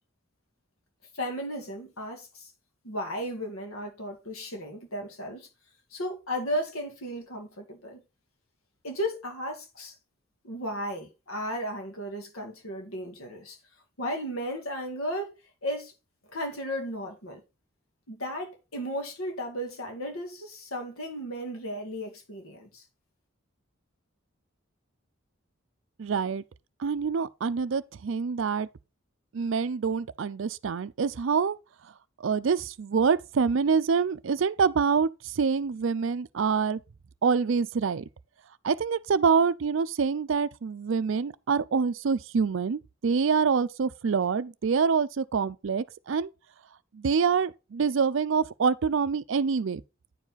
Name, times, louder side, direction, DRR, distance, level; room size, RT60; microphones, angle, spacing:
voice 1, 1.1-2.5 2.8-5.5 5.9-8.0 8.8-9.9 10.4-13.6 14.0-15.3 15.6-15.9 16.3-17.4 18.1-22.8, equal, 90° left, 2.1 m, -35 dB
voice 2, 26.0-26.4 26.8-28.7 29.3-31.6 32.2-36.8 37.2-38.0 38.6-46.3 46.9-49.8, right 5 dB, 65° right, 0.4 m, -26 dB
9.6 x 4.9 x 4.0 m
head